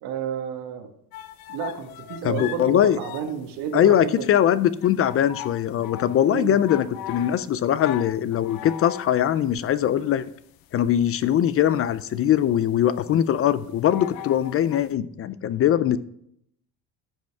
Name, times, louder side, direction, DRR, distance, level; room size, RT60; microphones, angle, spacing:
voice 1, 0.0-0.9 1.5-4.3 6.3-6.6, right 8 dB, 80° right, 6 dB, 1.6 m, -31 dB
sound 1, 1.1-14.9, left 12 dB, 65° left, 0.7 m, -40 dB
voice 2, 2.2-3.0 3.7-10.3 10.7-16.0, left 10 dB, 35° left, 14 dB, 0.4 m, -21 dB
14.5 x 5.2 x 3.5 m, 0.71 s
cardioid pair, 135°, 39 cm